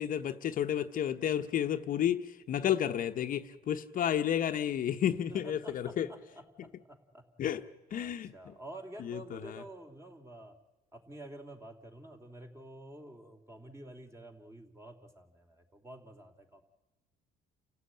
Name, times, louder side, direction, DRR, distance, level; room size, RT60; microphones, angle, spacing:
voice 1, 0.0-6.1 7.4-7.6 7.9-8.3 9.0-9.6, left 10 dB, 55° left, 1.0 m, -31 dB
voice 2, 5.3-7.2 7.9-10.6 10.9-16.6, right 1 dB, 15° right, 3.0 m, -49 dB
29.5 x 15.5 x 9.1 m
cardioid pair, 110°, 17 cm